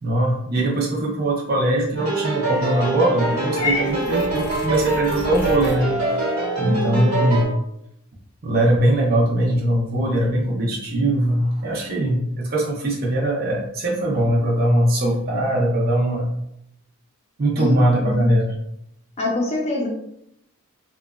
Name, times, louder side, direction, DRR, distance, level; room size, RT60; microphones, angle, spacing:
voice 1, 0.0-5.9 6.6-7.5 8.4-16.3 17.4-18.5, right 1 dB, 45° right, -4 dB, 0.5 m, -21 dB
sound 1, 2.0-7.5, right 2 dB, 75° right, 1.0 m, -24 dB
Purr / Meow, 3.6-5.8, left 3 dB, 90° left, 0.6 m, -29 dB
voice 2, 6.6-7.3 17.6-18.3 19.2-19.9, left 2 dB, 30° left, -1 dB, 0.5 m, -25 dB
2.8 x 2.2 x 2.3 m, 0.76 s
head